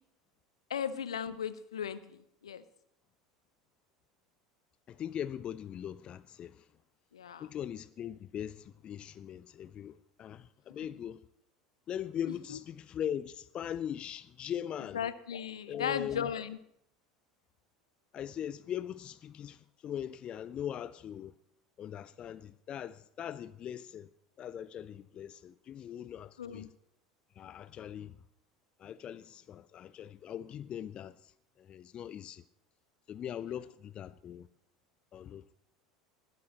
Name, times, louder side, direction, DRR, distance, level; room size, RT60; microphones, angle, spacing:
voice 1, 0.7-2.6 7.1-7.5 10.8-10.9 12.5-12.6 14.9-16.6 26.4-26.7, left 8 dB, 75° left, 0.6 m, -36 dB
voice 2, 4.9-6.6 7.4-11.2 11.9-15.0 15.7-16.3 18.1-21.3 21.8-24.1 24.4-26.7 27.4-28.2 28.8-31.3 31.6-32.4 33.1-34.5 35.1-35.4, left 9 dB, 35° left, 0.4 m, -40 dB
20.0 x 12.5 x 3.0 m
figure-of-eight pair, 75°, 3 cm